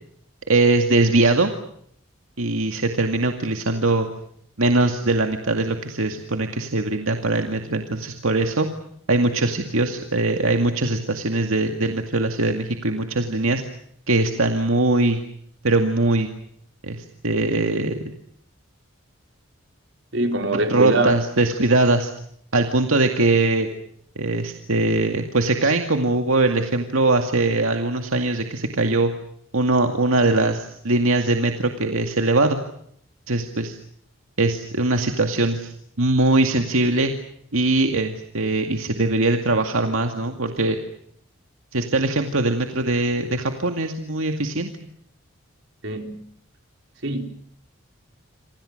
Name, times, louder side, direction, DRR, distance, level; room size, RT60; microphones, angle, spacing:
voice 1, 0.5-1.5 2.4-4.1 4.6-8.7 9.1-13.6 14.1-15.2 15.6-16.3 16.8-18.0 20.5-22.1 22.5-23.7 24.2-29.1 29.5-32.6 33.3-33.8 34.4-35.7 36.0-37.1 37.5-40.8 41.7-44.7, right 2 dB, 80° right, 2.2 m, -21 dB
voice 2, 20.1-21.1 45.8-46.2 47.0-47.2, right 2 dB, 60° right, 4.5 m, -23 dB
28.5 x 25.5 x 6.7 m
head